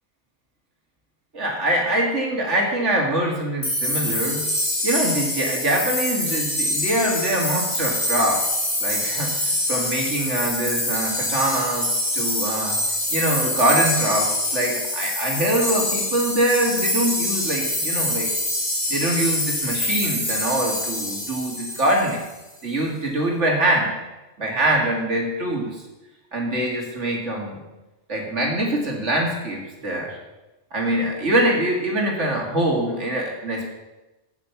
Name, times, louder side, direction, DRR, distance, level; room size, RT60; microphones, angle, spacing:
voice 1, 1.3-4.4 4.8-8.5 8.8-12.8 13.1-18.3 18.9-22.3 22.6-24.0 24.4-25.8 26.3-27.6 28.1-30.2 30.7-33.6, right 1 dB, 75° right, 0 dB, 2.9 m, -24 dB
sound 1, 3.6-22.3, left 1 dB, 50° left, 4.2 m, -25 dB
16.0 x 6.8 x 5.9 m, 1.1 s
omnidirectional pair, 1.2 m